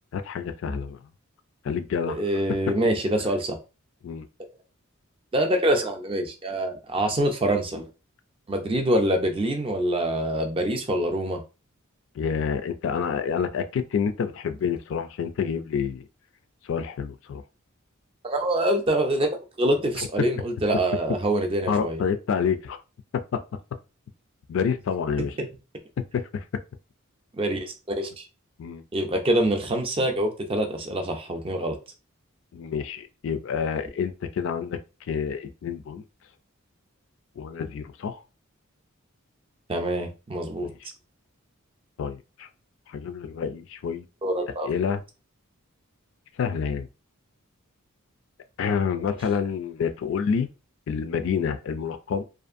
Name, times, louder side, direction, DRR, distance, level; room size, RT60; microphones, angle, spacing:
voice 1, 0.1-1.0 1.6-2.2 4.0-4.3 12.2-16.1 16.6-17.4 20.0-20.1 21.7-22.8 23.1-23.4 24.5-25.3 26.1-26.4 28.6-28.8 32.5-34.8 35.1-36.0 37.4-38.2 40.6-40.7 42.0-42.5 42.9-44.0 44.6-45.0 46.4-46.9 48.6-50.5 50.9-52.2, left 6 dB, 60° left, 0.3 m, -28 dB
voice 2, 2.1-3.6 5.3-7.8 8.5-11.4 18.2-19.3 19.6-22.0 25.4-25.5 27.4-28.3 28.9-31.8 39.7-40.7 44.2-44.7, right 1 dB, 25° right, 0.4 m, -25 dB
2.5 x 2.4 x 2.5 m
head